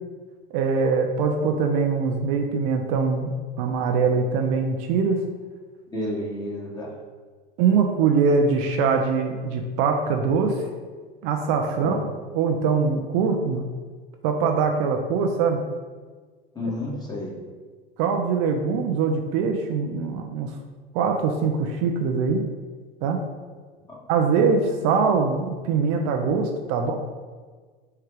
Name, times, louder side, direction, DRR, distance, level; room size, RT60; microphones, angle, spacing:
voice 1, 0.5-3.3 3.6-5.2 7.6-10.6 11.2-12.0 12.3-13.6 14.2-15.6 18.0-20.6 20.9-22.5 23.0-23.2 24.1-27.0, right 5 dB, 55° right, 4 dB, 0.5 m, -22 dB
voice 2, 5.9-6.9 11.8-12.0 16.5-17.3 26.8-27.1, left 1 dB, 15° left, -4 dB, 1.4 m, -31 dB
4.8 x 2.3 x 4.6 m, 1.5 s
hypercardioid pair, 95°, 29 cm